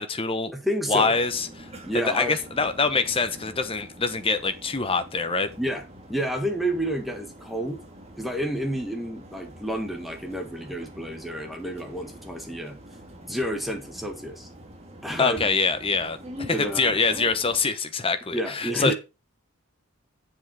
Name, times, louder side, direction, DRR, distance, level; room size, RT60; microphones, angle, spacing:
voice 1, 0.0-0.5 0.9-1.7 2.1-5.5 15.2-18.9, left 4 dB, 25° left, 0.9 m, -25 dB
voice 2, 0.5-1.2 1.8-2.3 5.6-5.8 6.1-7.8 8.2-12.8 13.3-14.5 15.0-15.4 16.5-17.0 18.3-18.9, equal, ahead, 1.5 m, -30 dB
sound 1, 1.1-17.6, equal, 30° right, 1.8 m, -45 dB
7.4 x 7.0 x 4.7 m
head